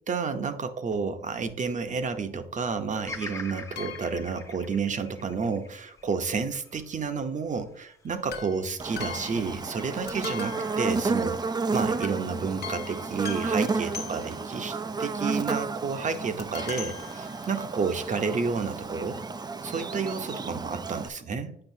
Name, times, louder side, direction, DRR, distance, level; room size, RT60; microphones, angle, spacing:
voice 1, 0.1-19.2 19.6-21.6, right 5 dB, 40° right, 9 dB, 0.8 m, -31 dB
Bird vocalization bird call bird song, 3.0-7.3 7.8-8.6, left 3 dB, 15° left, 0.8 m, -43 dB
sound 1, 3.7-4.5 8.3-9.8 10.1-11.6 12.0-12.3 12.6-14.6 16.4-17.8 18.6-18.7 18.8-18.9, left 7 dB, 55° left, 1.0 m, -41 dB
Buzz, 8.8-21.1, right 4 dB, 20° right, 0.4 m, -32 dB
8.7 x 5.2 x 2.7 m, 0.70 s
cardioid pair, 90°, 20 cm